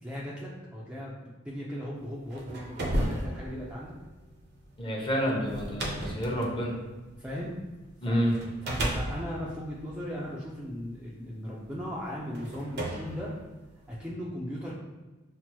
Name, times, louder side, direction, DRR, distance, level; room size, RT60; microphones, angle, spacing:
voice 1, 0.0-3.9 7.2-7.6 8.0-8.2 8.6-13.3 13.9-14.8, equal, 5° right, -6 dB, 0.5 m, -37 dB
sound 1, 2.1-7.7 8.3-10.8 11.6-11.7 12.3-14.0, right 1 dB, 55° right, 0.7 m, -35 dB
voice 2, 4.8-6.7 8.0-8.3, equal, 25° left, -3 dB, 0.9 m, -28 dB
5.9 x 2.0 x 2.9 m, 1.2 s
head